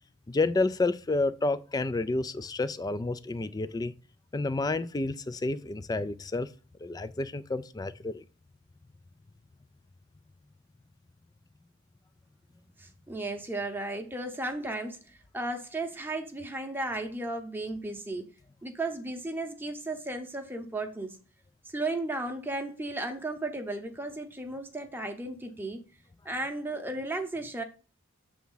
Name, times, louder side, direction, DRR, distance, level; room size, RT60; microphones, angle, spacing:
voice 1, 0.3-3.9 4.3-6.5 6.8-8.2, left 2 dB, 20° left, 0.3 m, -30 dB
voice 2, 12.8-18.3 18.6-21.2 21.7-25.8 26.2-27.6, right 2 dB, 10° right, 0.8 m, -35 dB
7.2 x 3.5 x 5.6 m
head